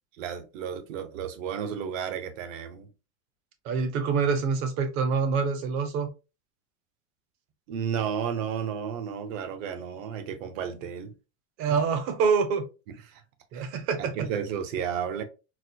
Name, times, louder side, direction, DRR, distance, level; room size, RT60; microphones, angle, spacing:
voice 1, 0.2-2.9 7.7-11.1 12.9-13.2 13.5-13.7 14.1-15.2, right 8 dB, 70° right, 0.8 m, -32 dB
voice 2, 3.6-6.1 11.6-12.6 13.5-14.3, right 5 dB, 35° right, 0.5 m, -26 dB
4.1 x 2.1 x 2.6 m
supercardioid pair, 155°, 41 cm